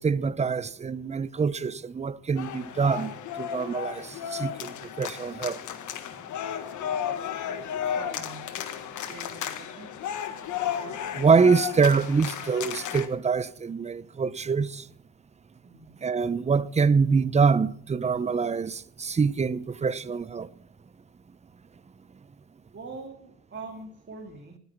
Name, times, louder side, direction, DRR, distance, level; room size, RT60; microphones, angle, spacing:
voice 1, 0.0-5.6 10.7-10.8 11.1-14.9 16.0-20.5, right 5 dB, 20° right, 0.6 m, -25 dB
sound 1, 2.4-13.1, left 9 dB, 75° left, 1.4 m, -34 dB
voice 2, 8.0-8.5 9.1-9.9 15.6-16.0 22.7-24.6, right 3 dB, 40° right, 2.4 m, -43 dB
18.5 x 9.4 x 6.0 m
cardioid pair, 90°, 30 cm